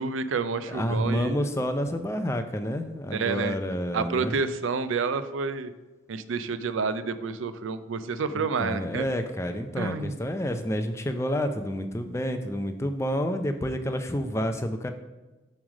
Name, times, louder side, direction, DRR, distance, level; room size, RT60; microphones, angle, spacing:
voice 1, 0.0-1.5 3.1-3.6 3.9-5.7 6.1-9.0 9.8-10.2, right 4 dB, 80° right, 12 dB, 0.4 m, -29 dB
voice 2, 0.7-4.3 8.3-14.9, equal, 15° left, 7 dB, 0.4 m, -29 dB
7.3 x 3.3 x 6.1 m, 1.1 s
head